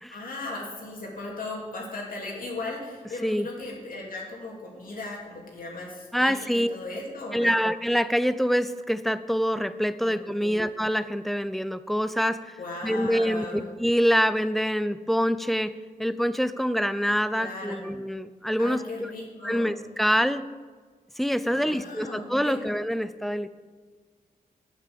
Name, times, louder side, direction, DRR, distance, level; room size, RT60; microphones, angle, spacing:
voice 1, 0.1-7.6 10.0-10.6 12.6-13.7 17.3-17.8 18.6-19.7 21.5-22.6, left 2 dB, 70° left, -2 dB, 2.7 m, -37 dB
voice 2, 6.1-6.7 7.3-15.7 16.0-19.1 19.4-20.4 21.2-23.5, equal, ahead, 13 dB, 0.4 m, -25 dB
9.8 x 9.4 x 6.9 m, 1.5 s
wide cardioid pair, 130°, 15 cm